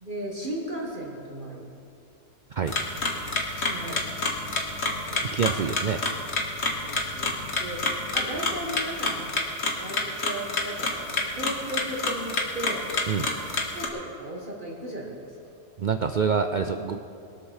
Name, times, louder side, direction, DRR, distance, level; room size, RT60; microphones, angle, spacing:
voice 1, 0.0-1.6 3.5-4.6 6.8-7.3 7.6-7.8 8.1-9.3 9.8-12.9 13.7-15.4, right 1 dB, 40° right, -3 dB, 1.9 m, -36 dB
sound 1, 2.7-13.9, left 2 dB, 55° left, 1.7 m, -29 dB
voice 2, 5.2-6.0 13.1-13.3 15.8-17.0, right 6 dB, 55° right, 7 dB, 0.5 m, -26 dB
21.5 x 7.7 x 6.4 m, 2.6 s
omnidirectional pair, 1.4 m